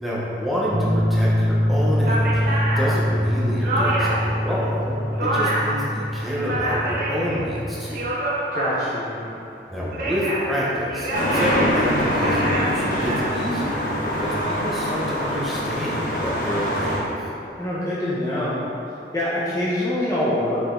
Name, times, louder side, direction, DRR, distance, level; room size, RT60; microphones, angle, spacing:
voice 1, 0.0-8.1 9.7-17.2, equal, ahead, -7 dB, 1.0 m, -28 dB
sound 1, 0.7-8.0, equal, 15° right, 0.7 m, -24 dB
sound 2, 1.5-1.6 2.0-4.3 4.7-5.8 6.2-7.4 7.8-9.0 9.7-10.5 10.9-13.2, right 1 dB, 50° right, 1.4 m, -26 dB
voice 2, 8.5-9.3 17.6-18.6 19.1-20.6, left 1 dB, 20° left, -8 dB, 0.8 m, -25 dB
sound 3, 11.1-17.0, equal, 45° left, 1.0 m, -24 dB
6.2 x 5.0 x 3.8 m, 2.8 s
head